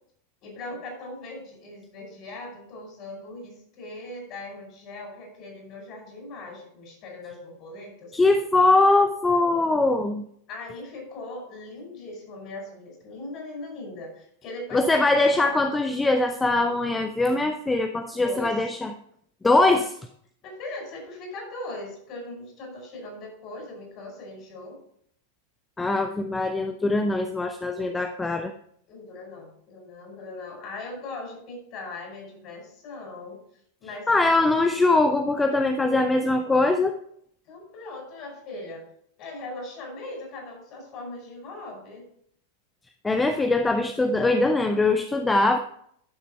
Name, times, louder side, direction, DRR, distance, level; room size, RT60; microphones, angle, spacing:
voice 1, 0.4-8.1 10.5-15.2 18.1-18.5 20.4-24.8 28.9-33.4 33.8-34.6 37.5-38.8 39.2-42.1, left 2 dB, 40° left, 1 dB, 5.1 m, -39 dB
voice 2, 8.1-10.2 14.7-18.9 19.4-20.0 25.8-28.5 34.1-36.9 43.0-45.6, left 2 dB, 10° left, 7 dB, 0.6 m, -22 dB
12.0 x 7.0 x 4.4 m, 0.67 s
figure-of-eight pair, 90°, 0 cm